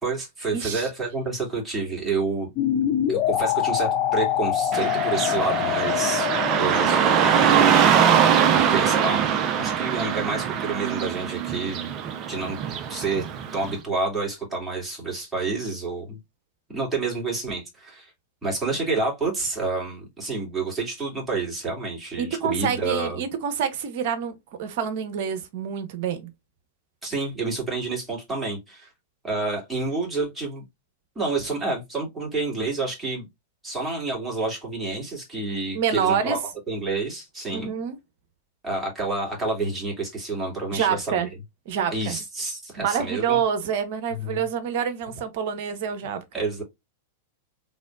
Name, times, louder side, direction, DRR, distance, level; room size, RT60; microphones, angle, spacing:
voice 1, 0.0-2.5 3.1-6.3 6.6-8.1 8.5-9.2 9.6-11.9 12.3-12.6 12.9-13.3 13.5-16.2 16.7-18.1 18.4-23.2 27.0-28.9 29.2-30.6 31.1-33.3 33.6-36.4 36.7-37.7 38.6-41.2 41.9-43.4 44.2-44.4 46.3-46.6, right 3 dB, 10° right, 2.5 m, -29 dB
voice 2, 0.5-0.9 22.2-26.3 35.7-36.4 37.5-38.0 40.7-41.3 41.7-42.2 42.8-46.2, right 7 dB, 50° right, 1.0 m, -27 dB
sound 1, 2.6-9.4, left 11 dB, 35° left, 0.5 m, -26 dB
Car passing by / Traffic noise roadway noise, 4.7-13.7, right 8 dB, 35° right, 0.7 m, -22 dB
4.1 x 3.6 x 2.4 m
figure-of-eight pair, 95°, 0 cm